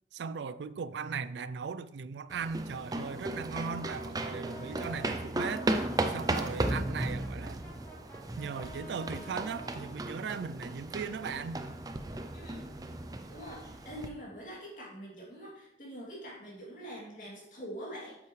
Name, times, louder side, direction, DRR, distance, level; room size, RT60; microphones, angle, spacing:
voice 1, 0.1-5.7 6.1-7.6 8.4-11.6, right 5 dB, 80° right, 0.4 m, -38 dB
sound 1, 2.3-14.1, right 2 dB, 20° right, 0.4 m, -35 dB
Brass instrument, 3.7-9.9, right 1 dB, 15° left, 1.7 m, -51 dB
voice 2, 12.3-12.7 13.3-18.2, equal, 45° left, 2.8 m, -44 dB
8.2 x 7.3 x 3.2 m
head